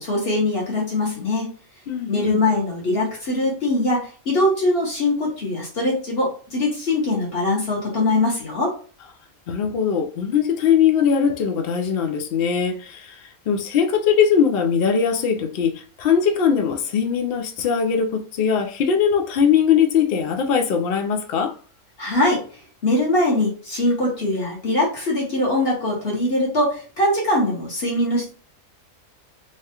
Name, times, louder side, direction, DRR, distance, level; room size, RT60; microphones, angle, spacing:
voice 1, 0.0-1.5 2.1-8.7 22.0-22.4 22.8-28.3, left 2 dB, 45° left, 1.2 m, -22 dB
voice 2, 1.9-2.4 9.5-13.1 13.5-21.5, left 7 dB, 60° left, 0.6 m, -20 dB
3.3 x 2.3 x 2.8 m
omnidirectional pair, 1.5 m